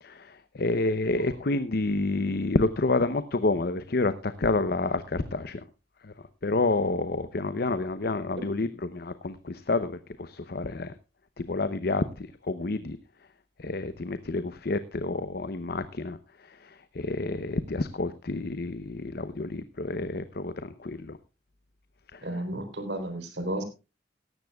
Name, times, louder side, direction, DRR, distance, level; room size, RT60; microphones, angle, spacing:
voice 1, 0.0-5.6 6.4-10.9 11.4-13.0 13.6-16.2 16.9-21.2 22.1-22.2, left 3 dB, 60° left, 12 dB, 0.7 m, -29 dB
voice 2, 22.2-23.6, right 1 dB, 80° right, 7 dB, 3.8 m, -33 dB
17.5 x 14.5 x 2.3 m, 0.30 s
head